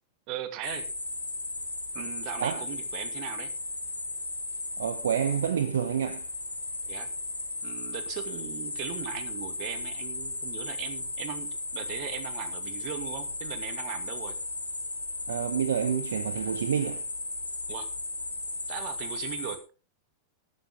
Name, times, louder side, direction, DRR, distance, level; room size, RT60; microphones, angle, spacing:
voice 1, 0.3-0.9 1.9-3.5 6.9-7.1 7.6-11.5 11.7-14.4 17.7-17.9 18.7-19.6, right 11 dB, 40° right, 2.3 m, -38 dB
sound 1, 0.6-19.6, left 2 dB, 85° left, 2.1 m, -36 dB
voice 2, 4.8-6.2 15.3-17.0, right 8 dB, 65° right, 0.9 m, -28 dB
14.0 x 12.0 x 3.8 m
figure-of-eight pair, 90°, 0 cm